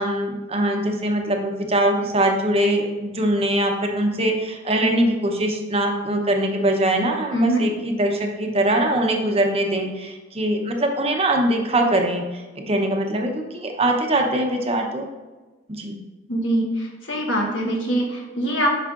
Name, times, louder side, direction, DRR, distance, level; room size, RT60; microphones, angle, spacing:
voice 1, 0.0-15.1 15.7-16.0, right 1 dB, 30° right, 3 dB, 0.8 m, -22 dB
voice 2, 7.3-7.6 16.3-18.7, right 1 dB, 70° left, 0 dB, 1.4 m, -23 dB
8.1 x 5.6 x 2.5 m, 1.2 s
head